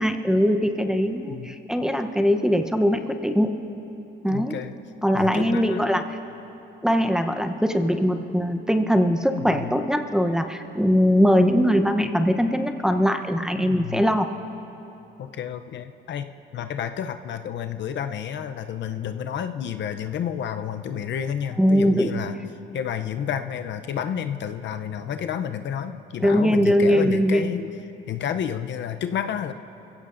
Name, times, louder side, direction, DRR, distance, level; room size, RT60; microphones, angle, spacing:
voice 1, 0.0-3.5 4.2-4.5 5.0-6.0 6.8-14.3 21.6-22.1 26.2-27.5, equal, 5° right, 6 dB, 0.8 m, -21 dB
voice 2, 4.3-4.7 5.1-5.9 9.3-9.7 13.6-14.0 15.2-22.4 22.7-27.7 28.1-29.5, left 8 dB, 65° left, 8 dB, 0.6 m, -30 dB
22.5 x 16.0 x 2.6 m, 2.9 s
cardioid pair, 90°, 20 cm